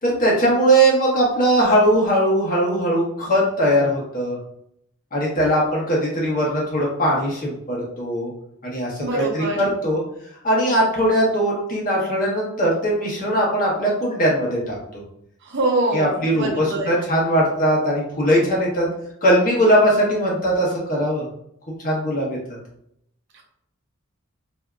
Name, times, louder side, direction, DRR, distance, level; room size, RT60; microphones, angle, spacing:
voice 1, 0.0-4.4 5.1-8.3 8.6-10.0 10.4-15.0 15.9-18.9 19.2-21.2 21.8-22.4, right 1 dB, 40° left, -4 dB, 1.0 m, -20 dB
voice 2, 9.0-9.7 15.5-16.9 23.3-23.4, right 2 dB, 55° right, 0 dB, 0.7 m, -24 dB
3.4 x 2.7 x 2.3 m, 0.73 s
head